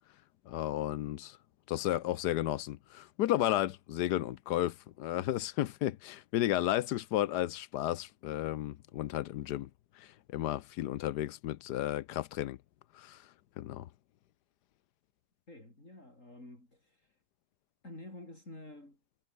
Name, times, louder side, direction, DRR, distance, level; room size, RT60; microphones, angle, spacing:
voice 1, 0.5-1.4 1.7-9.7 10.0-12.6 12.9-13.2 13.6-13.9, left 13 dB, 75° left, 1.2 m, -33 dB
voice 2, 15.5-17.2 17.8-19.0, left 1 dB, 45° left, 8.2 m, -50 dB
omnidirectional pair, 1.9 m